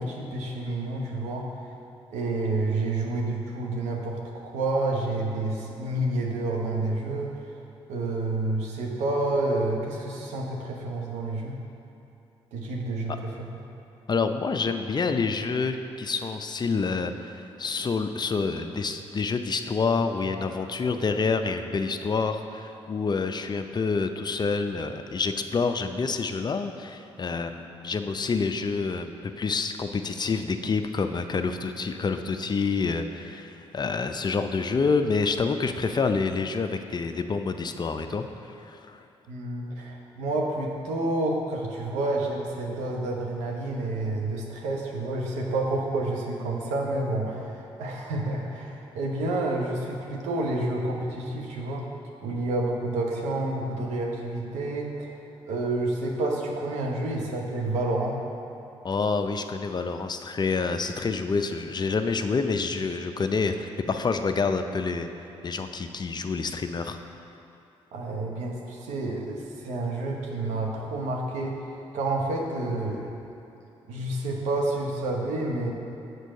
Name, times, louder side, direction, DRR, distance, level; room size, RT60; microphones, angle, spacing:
voice 1, 0.0-1.5 2.1-7.4 7.9-11.5 12.5-13.4 39.3-51.9 52.2-55.1 55.5-58.2 67.9-71.6 71.9-73.1 73.9-75.7, right 2 dB, 85° right, 0 dB, 0.9 m, -29 dB
voice 2, 14.1-17.3 17.6-38.3 38.6-39.0 58.8-65.1 65.4-67.0, left 4 dB, 35° left, 8 dB, 0.5 m, -27 dB
6.7 x 4.5 x 6.3 m, 2.7 s
supercardioid pair, 55°, 12 cm